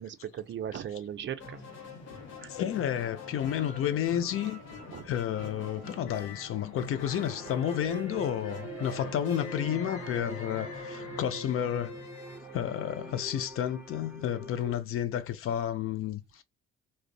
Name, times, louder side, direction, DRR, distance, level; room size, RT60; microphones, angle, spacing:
voice 1, 0.0-1.6 2.4-2.5 4.9-5.1 9.0-9.1, right 9 dB, 40° right, 0.4 m, -38 dB
sound 1, 1.4-13.2, left 3 dB, 65° left, 1.0 m, -47 dB
sound 2, 1.5-11.2, left 3 dB, 85° left, 0.9 m, -46 dB
voice 2, 2.5-4.6 5.0-12.0 12.5-16.4, left 10 dB, 50° left, 0.5 m, -31 dB
sound 3, 5.3-14.8, right 4 dB, 10° right, 0.8 m, -45 dB
2.4 x 2.1 x 2.4 m
hypercardioid pair, 60°, 29 cm